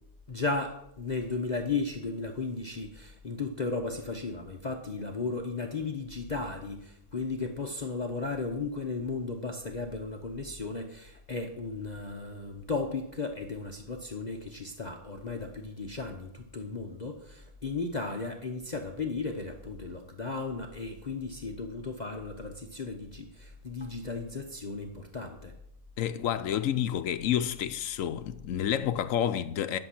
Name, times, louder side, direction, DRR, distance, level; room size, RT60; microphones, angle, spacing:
voice 1, 0.3-25.6, left 3 dB, 35° left, 0.8 m, -35 dB
voice 2, 26.0-29.8, left 10 dB, 70° left, 1.0 m, -29 dB
11.0 x 6.9 x 5.8 m
omnidirectional pair, 1.5 m